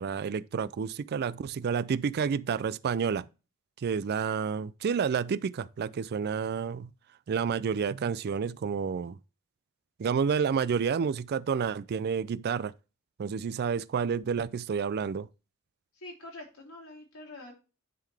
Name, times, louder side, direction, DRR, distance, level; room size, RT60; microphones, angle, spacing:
voice 1, 0.0-3.3 3.8-6.9 7.3-9.2 10.0-12.7 13.2-15.3, right 6 dB, 50° right, 0.3 m, -30 dB
voice 2, 15.9-17.5, left 2 dB, 90° left, 3.4 m, -45 dB
10.0 x 3.9 x 3.4 m
head